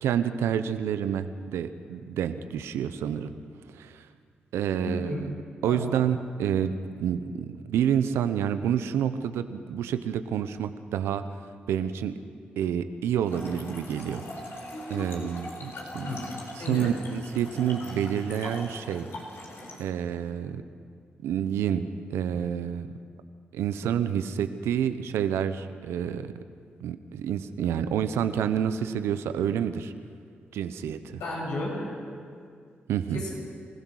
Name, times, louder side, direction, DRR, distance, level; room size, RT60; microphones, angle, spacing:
voice 1, 0.0-3.3 3.7-4.1 4.5-5.3 5.6-11.2 11.7-12.1 12.6-14.5 14.9-16.1 16.6-19.1 19.8-20.6 21.2-22.9 23.5-26.3 26.8-29.9 30.5-31.2 32.9-33.2, right 9 dB, 85° right, 11 dB, 0.9 m, -28 dB
voice 2, 4.8-5.2 5.6-6.0 16.0-16.2 16.6-16.9 31.1-31.9 33.1-33.3, left 1 dB, 85° left, -4 dB, 6.9 m, -33 dB
Trickle dribble / Fill (with liquid), 13.2-19.9, left 1 dB, 70° left, 3.9 m, -41 dB
26.5 x 16.0 x 6.5 m, 2.2 s
supercardioid pair, 40°, 4 cm